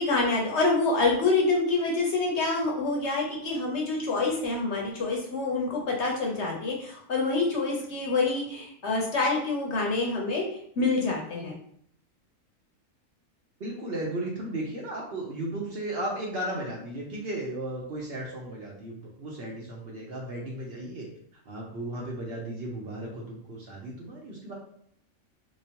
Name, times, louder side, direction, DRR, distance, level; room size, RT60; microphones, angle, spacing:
voice 1, 0.0-11.5, left 3 dB, 60° left, -1 dB, 0.9 m, -27 dB
voice 2, 13.6-21.1 21.3-24.5, right 1 dB, 50° right, -3 dB, 0.8 m, -35 dB
3.3 x 3.0 x 2.8 m, 0.65 s
omnidirectional pair, 1.5 m